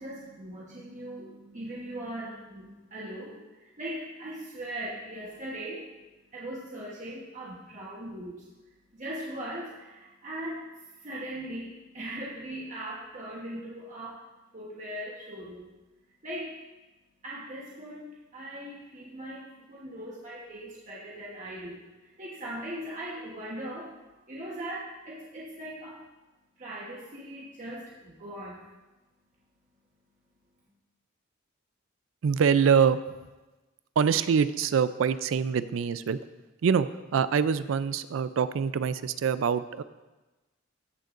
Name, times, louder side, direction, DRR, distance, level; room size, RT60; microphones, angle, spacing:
voice 1, 0.0-5.9 6.3-14.3 14.5-15.7 16.2-16.6 17.2-24.0 24.3-26.0 26.6-28.7, right 1 dB, 40° right, -5 dB, 1.2 m, -40 dB
voice 2, 32.2-33.0 34.0-36.2 36.6-39.8, right 6 dB, 80° right, 14 dB, 0.4 m, -25 dB
14.5 x 6.5 x 2.5 m, 1.1 s
head